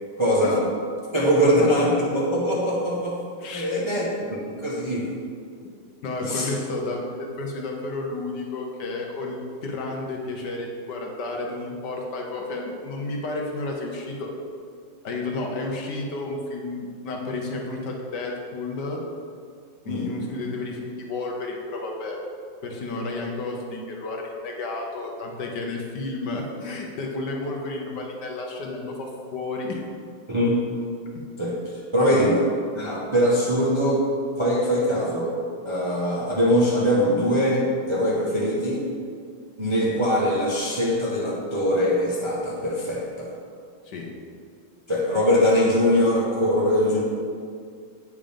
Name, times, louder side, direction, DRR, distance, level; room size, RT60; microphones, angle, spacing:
voice 1, 0.2-0.6 1.1-3.2 3.5-5.1 6.2-6.5 19.8-20.1 30.3-30.6 31.4-31.5 31.9-32.4 32.7-34.0 34.4-35.3 35.6-38.8 39.6-43.3 44.9-47.0, equal, 20° right, -5 dB, 0.9 m, -22 dB
voice 2, 3.4-4.0 6.0-14.3 15.0-19.0 19.8-22.2 22.6-29.9 32.0-32.4 43.8-44.1, left 2 dB, 65° left, 0 dB, 1.4 m, -31 dB
8.7 x 5.0 x 5.2 m, 2.2 s
omnidirectional pair, 2.1 m